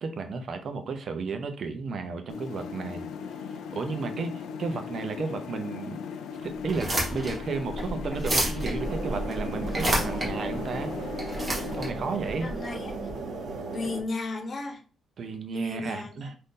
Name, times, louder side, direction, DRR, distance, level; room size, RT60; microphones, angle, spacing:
voice 1, 0.0-3.1 3.7-6.0 6.4-10.9 11.7-12.5 15.2-16.4, right 4 dB, 45° right, 6 dB, 0.5 m, -33 dB
sound 1, 2.3-11.9, left 6 dB, 85° left, 0.4 m, -38 dB
sound 2, 6.6-13.1, right 1 dB, 20° right, 0.9 m, -31 dB
sound 3, 8.8-14.0, right 3 dB, 85° right, 0.8 m, -36 dB
voice 2, 12.4-13.0 13.7-14.8 15.5-16.3, left 3 dB, 30° left, 3 dB, 0.5 m, -34 dB
2.7 x 2.5 x 3.6 m, 0.39 s
cardioid pair, 175°, 0 cm